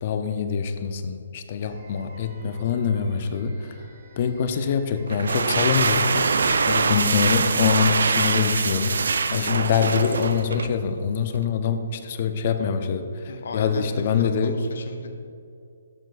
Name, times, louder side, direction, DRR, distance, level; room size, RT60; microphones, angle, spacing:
voice 1, 0.0-3.8 4.2-6.3 6.7-9.0 9.3-14.6, left 6 dB, 45° left, 8 dB, 0.5 m, -24 dB
sound 1, 1.6-10.6, right 2 dB, 45° right, 1.0 m, -49 dB
sound 2, 5.1-10.8, right 4 dB, 70° right, 0.3 m, -23 dB
voice 2, 9.3-9.6 13.3-15.3, left 3 dB, 65° left, 5 dB, 0.8 m, -35 dB
12.0 x 4.5 x 2.5 m, 2.5 s
hypercardioid pair, 140°, 0 cm